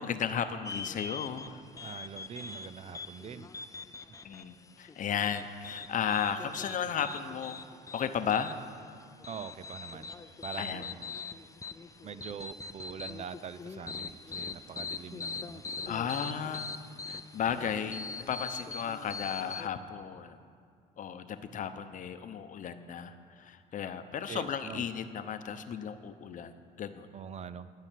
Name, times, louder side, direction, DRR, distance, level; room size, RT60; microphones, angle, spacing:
voice 1, 0.0-1.6 4.2-7.6 7.9-8.6 10.6-10.9 15.9-16.7 17.1-20.4 21.0-27.1, left 8 dB, 50° left, 9 dB, 0.8 m, -34 dB
sound 1, 0.6-19.7, left 4 dB, 20° left, 0.6 m, -42 dB
voice 2, 1.8-3.5 9.3-10.1 10.4-11.2 12.0-15.9 17.4-17.5 24.3-24.8 27.1-27.7, right 7 dB, 40° right, 13 dB, 0.5 m, -44 dB
16.0 x 5.8 x 9.2 m, 2.2 s
cardioid pair, 110°, 17 cm